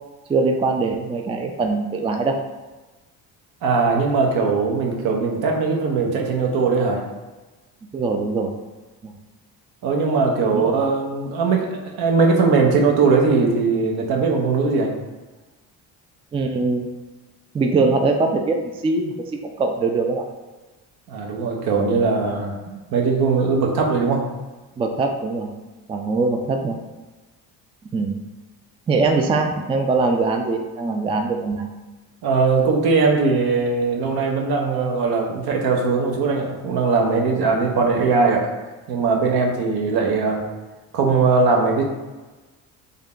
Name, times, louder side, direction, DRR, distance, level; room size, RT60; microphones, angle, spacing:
voice 1, 0.3-2.4 7.9-8.5 9.0-9.1 10.5-10.6 16.3-16.9 17.5-20.2 22.7-22.8 24.8-25.5 25.9-26.8 27.9-28.2 28.9-31.7, right 3 dB, 15° right, 3 dB, 0.3 m, -22 dB
voice 2, 3.6-7.0 9.8-14.9 21.1-22.6 22.9-24.2 32.2-38.5 38.9-40.4 40.9-41.8, right 4 dB, 70° right, 0 dB, 0.9 m, -20 dB
3.6 x 2.2 x 3.6 m, 1.2 s
cardioid pair, 95°, 39 cm